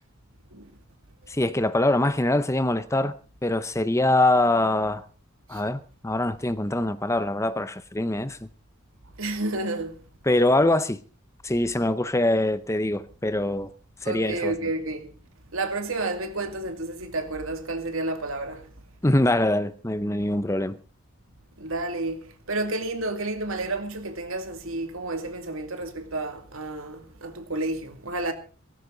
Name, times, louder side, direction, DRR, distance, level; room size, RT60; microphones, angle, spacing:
voice 1, 1.3-3.1 3.4-5.0 5.5-8.4 10.3-11.0 11.4-13.7 14.0-14.5 19.0-20.8, left 1 dB, 15° left, 0.7 m, -23 dB
voice 2, 9.2-10.0 14.0-15.1 15.5-18.7 21.6-28.3, right 2 dB, 75° right, 2.5 m, -31 dB
18.0 x 15.0 x 4.0 m
head